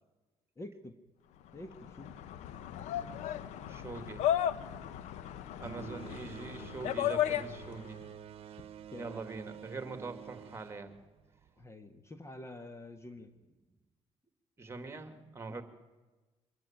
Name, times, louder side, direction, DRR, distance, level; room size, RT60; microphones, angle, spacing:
voice 1, 0.6-0.9 1.5-2.1 8.9-9.2 11.6-13.3 15.5-15.6, left 2 dB, 25° left, 9 dB, 1.5 m, -47 dB
sound 1, 1.6-7.9, left 10 dB, 85° left, 1.0 m, -35 dB
voice 2, 3.7-4.3 5.6-8.0 9.0-10.9 14.6-15.6, right 3 dB, 20° right, 9 dB, 2.6 m, -43 dB
sound 2, 5.6-11.6, right 9 dB, 55° right, 1.1 m, -49 dB
24.5 x 13.5 x 9.1 m, 1.2 s
cardioid pair, 100°, 11 cm